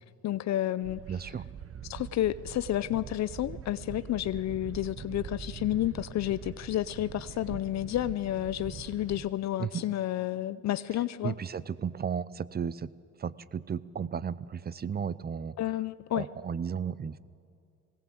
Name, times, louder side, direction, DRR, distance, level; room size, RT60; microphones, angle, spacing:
voice 1, 0.2-1.0 1.9-11.3 15.6-16.2, left 13 dB, 65° left, 15 dB, 0.6 m, -31 dB
sound 1, 0.8-9.2, right 8 dB, 50° right, 1.0 m, -43 dB
voice 2, 1.1-1.5 9.6-9.8 11.2-12.9 13.2-15.6 16.1-17.2, right 7 dB, 30° right, 19 dB, 0.6 m, -34 dB
21.0 x 18.0 x 7.7 m, 2.4 s
cardioid pair, 90°, 30 cm